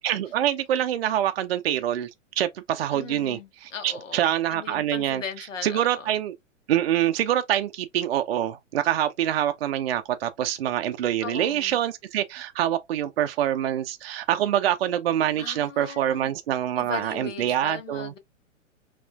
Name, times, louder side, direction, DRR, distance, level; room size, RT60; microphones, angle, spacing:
voice 1, 0.0-2.1 2.4-5.2 5.6-6.3 6.7-18.1, right 11 dB, 50° right, 0.5 m, -25 dB
voice 2, 2.9-6.1 11.2-11.8 15.3-16.3 16.8-18.2, left 7 dB, 70° left, 1.0 m, -38 dB
5.4 x 2.4 x 2.3 m
figure-of-eight pair, 105°, 39 cm